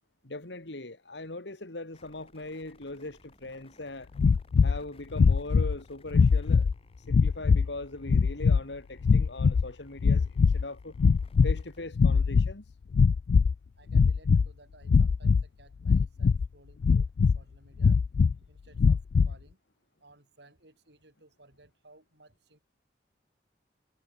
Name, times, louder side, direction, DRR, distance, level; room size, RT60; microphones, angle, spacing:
voice 1, 0.2-4.1 4.6-6.7 7.0-11.0 11.4-12.7, left 2 dB, 85° left, 2.5 m, -40 dB
sound 1, 1.9-11.8, left 1 dB, 35° left, 6.4 m, -59 dB
sound 2, 4.2-4.8 5.1-5.8 6.1-6.7 7.1-7.7 8.1-8.6 9.0-9.7 10.0-10.6 10.9-11.6 11.9-12.5 12.9-13.5 13.9-14.5 14.9-15.4 15.9-16.5 16.8-17.4 17.8-18.3 18.8-19.3, left 5 dB, 55° left, 0.3 m, -22 dB
voice 2, 13.8-19.6 20.0-22.6, right 2 dB, 75° right, 5.4 m, -59 dB
head